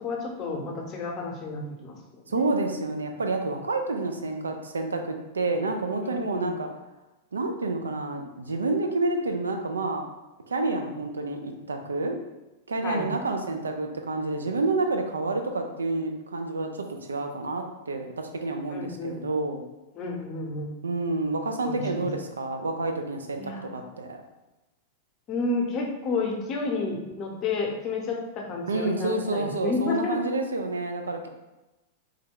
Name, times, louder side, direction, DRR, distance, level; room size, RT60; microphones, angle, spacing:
voice 1, 0.0-2.0 2.3-2.5 6.0-6.5 12.8-13.1 18.7-19.3 19.9-20.7 21.6-22.1 23.4-23.8 25.3-30.3, left 3 dB, 35° left, 0 dB, 0.7 m, -31 dB
voice 2, 2.3-6.7 7.3-10.0 10.5-12.2 12.7-19.6 20.8-24.2 28.7-31.3, right 2 dB, 85° right, 4 dB, 0.4 m, -29 dB
3.2 x 2.2 x 3.6 m, 1.0 s
figure-of-eight pair, 95°, 0 cm